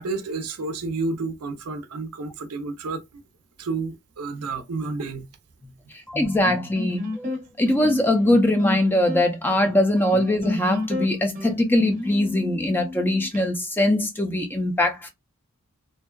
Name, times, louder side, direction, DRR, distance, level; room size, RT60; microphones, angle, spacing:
voice 1, 0.0-3.2 3.6-5.3, right 3 dB, 85° right, 0.5 m, -30 dB
voice 2, 6.1-7.3 7.6-15.1, left 1 dB, 10° left, 0.3 m, -21 dB
sound 1, 6.4-13.4, left 2 dB, 35° right, 0.6 m, -32 dB
2.5 x 2.2 x 2.2 m
head